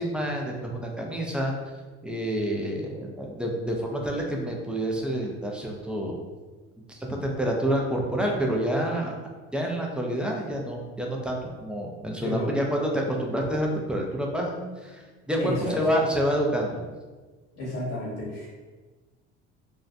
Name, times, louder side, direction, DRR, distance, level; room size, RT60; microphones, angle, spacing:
voice 1, 0.0-1.5 2.0-6.2 6.9-9.1 9.5-16.7, equal, 5° right, -1 dB, 0.3 m, -28 dB
voice 2, 15.4-15.8 17.6-18.5, left 1 dB, 60° left, -6 dB, 1.0 m, -31 dB
2.6 x 2.1 x 2.4 m, 1.3 s
supercardioid pair, 85°, 32 cm